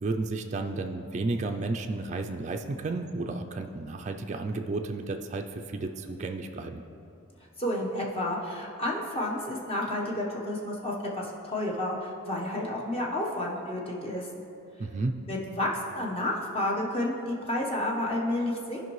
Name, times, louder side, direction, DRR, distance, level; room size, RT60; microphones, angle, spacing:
voice 1, 0.0-6.8 14.8-15.2, right 3 dB, 35° right, 4 dB, 0.3 m, -32 dB
voice 2, 7.6-14.3 15.3-18.8, left 1 dB, 25° left, -2 dB, 1.0 m, -31 dB
14.0 x 5.3 x 3.1 m, 2.7 s
head